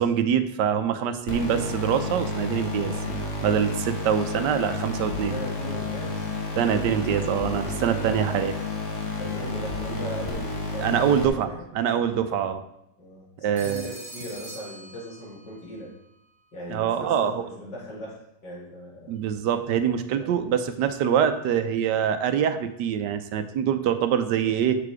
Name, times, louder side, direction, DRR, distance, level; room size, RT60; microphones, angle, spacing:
voice 1, 0.0-2.9 3.4-5.3 6.6-8.5 10.8-11.5 11.7-12.6 13.4-13.8 16.7-17.4 19.1-24.8, right 8 dB, 75° right, 9 dB, 1.3 m, -24 dB
sound 1, 1.3-11.3, left 2 dB, 45° left, 1.6 m, -31 dB
voice 2, 5.3-6.2 7.8-8.4 9.2-11.6 13.0-15.9 16.5-19.1 20.1-20.3, equal, 75° left, -5 dB, 3.2 m, -39 dB
Telephone, 13.6-15.6, right 2 dB, 20° right, 1.5 m, -43 dB
6.9 x 5.6 x 4.8 m, 0.82 s
omnidirectional pair, 1.9 m